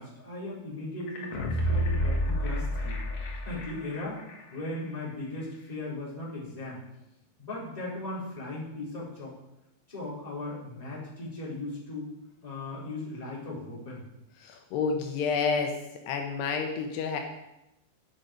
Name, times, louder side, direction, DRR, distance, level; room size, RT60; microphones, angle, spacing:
voice 1, 0.0-3.0 3.4-4.2 4.5-6.8 7.4-9.3 9.9-12.1 12.4-14.0, left 2 dB, 10° left, -7 dB, 3.8 m, -37 dB
sound 1, 1.1-4.0 4.3-4.4, equal, 55° left, 2.5 m, -29 dB
voice 2, 14.4-15.8 16.1-17.2, left 5 dB, 80° left, 3 dB, 3.0 m, -29 dB
11.0 x 9.5 x 5.1 m, 0.90 s
omnidirectional pair, 4.9 m